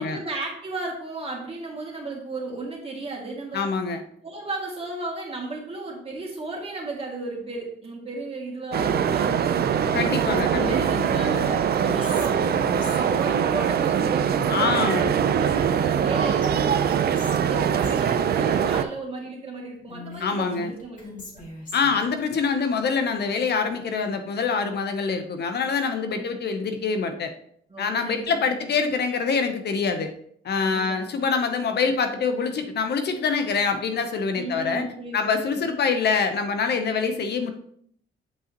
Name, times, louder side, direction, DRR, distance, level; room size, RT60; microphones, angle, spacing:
voice 1, 0.0-3.6 4.2-9.8 10.2-16.5 17.5-21.4 26.1-26.3 27.7-28.3 30.6-31.0 34.4-35.6, right 3 dB, 30° right, -1 dB, 2.3 m, -35 dB
voice 2, 3.5-4.0 9.9-10.9 14.5-15.1 20.2-20.7 21.7-27.3 27.8-30.1 30.4-34.8 35.1-37.5, left 5 dB, 55° left, 7 dB, 0.8 m, -25 dB
sound 1, 8.7-18.8, right 8 dB, 50° right, 0.5 m, -23 dB
Whispering, 10.5-13.3 15.4-16.1 16.4-16.5 16.9-18.1 19.9-22.0, left 3 dB, 40° left, 2.5 m, -39 dB
7.7 x 5.6 x 2.9 m, 0.66 s
cardioid pair, 90°, 20 cm